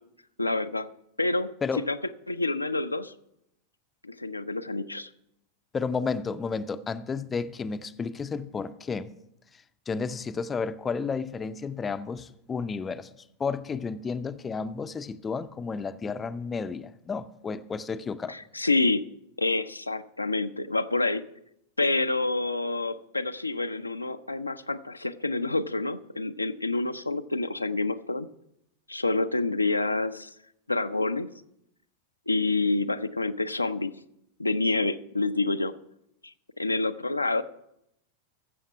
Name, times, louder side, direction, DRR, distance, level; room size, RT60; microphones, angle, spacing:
voice 1, 0.4-0.9 1.2-2.0 2.3-3.1 4.0-5.1 18.3-19.0 19.4-21.2 21.8-28.3 28.9-30.3 30.7-31.3 32.3-33.9 34.4-35.7 36.2-37.4, left 2 dB, 85° left, 0.4 m, -28 dB
voice 2, 5.7-9.1 9.9-13.1 13.4-18.3, left 5 dB, 20° left, 0.5 m, -32 dB
14.5 x 7.2 x 5.7 m
figure-of-eight pair, 90°, 0 cm